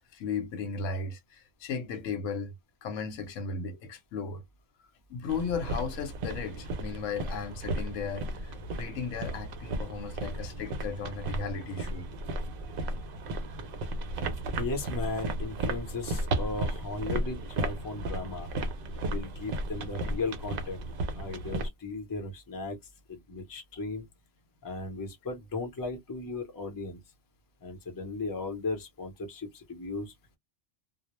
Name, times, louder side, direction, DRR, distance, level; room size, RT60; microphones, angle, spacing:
voice 1, 0.0-2.5 2.8-4.4 5.1-12.1, left 5 dB, 85° left, 1.0 m, -36 dB
sound 1, 5.3-21.7, right 2 dB, 60° right, 0.6 m, -34 dB
voice 2, 14.6-18.5 19.0-20.8 21.1-22.8 23.1-24.1 24.6-27.0 27.6-30.4, left 3 dB, 20° left, 0.6 m, -36 dB
2.1 x 2.0 x 2.9 m
omnidirectional pair, 1.3 m